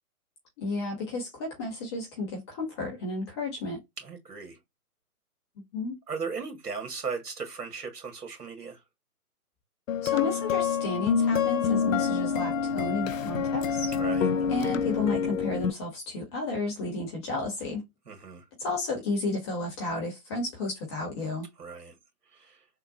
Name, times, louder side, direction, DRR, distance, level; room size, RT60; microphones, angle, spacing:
voice 1, 0.6-3.8 5.7-5.9 10.0-13.9 14.5-17.8 18.6-21.5, left 3 dB, 20° left, 0.8 m, -32 dB
voice 2, 4.0-4.6 6.1-8.8 14.0-14.3 18.1-18.4 21.6-21.9 22.3-22.6, right 5 dB, 80° right, 1.7 m, -37 dB
sound 1, 9.9-15.7, left 6 dB, 60° left, 0.5 m, -27 dB
3.6 x 2.2 x 2.5 m
hypercardioid pair, 145°, 46 cm